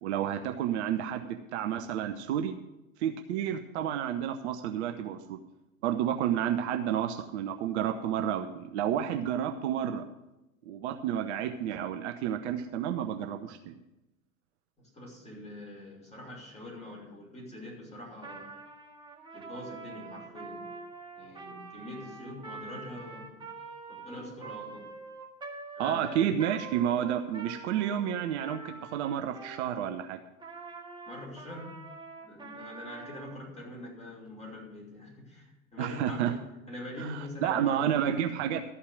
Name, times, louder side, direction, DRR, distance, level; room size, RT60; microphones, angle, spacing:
voice 1, 0.0-2.6 3.0-5.4 5.8-10.0 10.7-13.7 25.8-30.2 35.8-36.3 37.0-38.6, right 10 dB, 50° right, 6 dB, 0.9 m, -30 dB
voice 2, 14.8-18.5 19.3-20.7 21.2-23.5 23.9-24.9 25.7-26.2 31.1-31.8 32.2-36.4 36.7-38.3, left 1 dB, 15° left, -2 dB, 5.5 m, -44 dB
Trumpet, 18.2-29.9 30.4-33.4, right 4 dB, 10° right, 1.9 m, -45 dB
13.5 x 5.7 x 9.3 m, 0.96 s
figure-of-eight pair, 85°, 42 cm